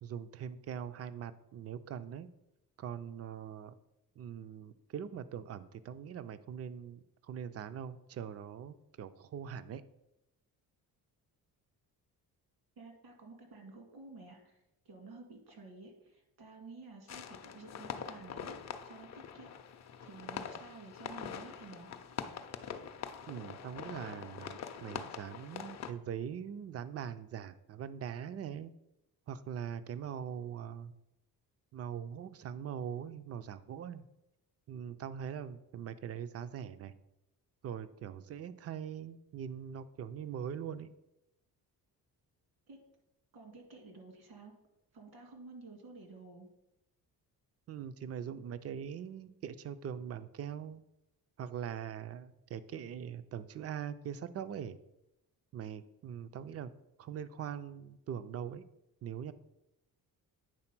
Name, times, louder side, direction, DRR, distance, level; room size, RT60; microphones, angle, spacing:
voice 1, 0.0-2.3 2.8-3.7 4.2-9.8 23.3-28.7 29.3-30.9 31.7-34.1 34.7-36.9 37.6-40.9 47.7-50.8 51.4-54.8 55.5-56.7 57.0-58.6 59.0-59.3, right 8 dB, 40° right, 13 dB, 0.4 m, -42 dB
voice 2, 12.8-14.6 14.9-21.9 42.7-42.8 43.3-44.5 44.9-46.5, right 3 dB, 75° right, 3 dB, 1.9 m, -52 dB
sound 1, 17.1-25.9, left 8 dB, 45° left, 0.5 m, -44 dB
8.9 x 3.8 x 5.9 m, 0.88 s
cardioid pair, 160°, 38 cm